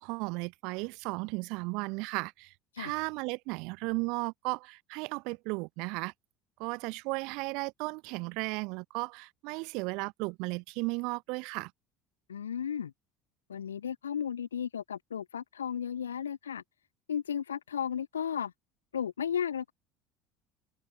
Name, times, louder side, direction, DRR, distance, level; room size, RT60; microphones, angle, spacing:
voice 1, 0.0-6.1 6.6-11.7, right 28 dB, 65° right, 0.4 m, -35 dB
voice 2, 12.3-12.9 13.5-16.6 17.1-18.5 18.9-19.7, left 8 dB, 85° left, 0.3 m, -34 dB
hypercardioid pair, 70°, 0 cm